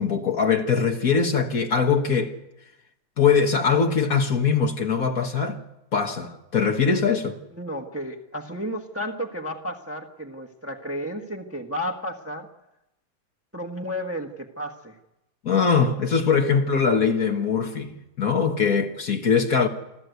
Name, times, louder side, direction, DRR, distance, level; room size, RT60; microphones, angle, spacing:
voice 1, 0.0-2.3 3.2-5.6 5.9-7.4 15.4-19.7, left 6 dB, 50° left, 1.7 m, -22 dB
voice 2, 7.6-12.5 13.5-15.0, equal, 10° right, 1.1 m, -32 dB
26.5 x 13.5 x 8.1 m
omnidirectional pair, 2.1 m